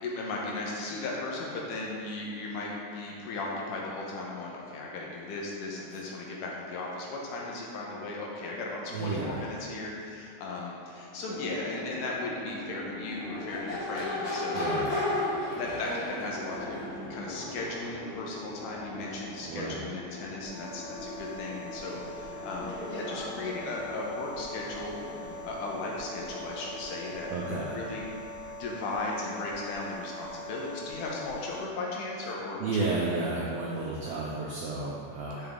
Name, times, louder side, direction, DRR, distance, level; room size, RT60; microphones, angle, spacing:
voice 1, 0.0-14.6 15.1-24.9 25.4-28.0 28.4-32.6 35.4-35.5, left 2 dB, 90° left, -3 dB, 2.4 m, -36 dB
voice 2, 8.9-9.4 14.5-14.9 19.5-19.7 27.3-27.7 32.6-35.5, right 3 dB, 85° right, -4 dB, 1.4 m, -32 dB
Crowd / Race car auto racing / Accelerating revving vroom, 11.1-28.1, left 1 dB, 70° left, 2.5 m, -38 dB
sound 1, 20.4-31.6, left 1 dB, 50° left, 2.0 m, -43 dB
5.8 x 5.3 x 3.5 m, 2.5 s
omnidirectional pair, 3.6 m